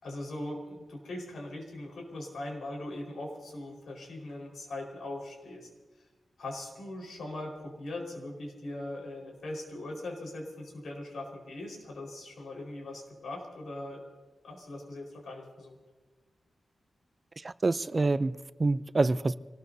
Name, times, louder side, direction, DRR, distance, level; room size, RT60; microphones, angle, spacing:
voice 1, 0.0-5.7 6.4-14.0 14.4-15.8, left 1 dB, 85° left, 1 dB, 4.7 m, -40 dB
voice 2, 17.4-19.4, right 3 dB, 30° right, 15 dB, 0.5 m, -27 dB
27.0 x 19.5 x 2.8 m, 1.3 s
wide cardioid pair, 110°, 0 cm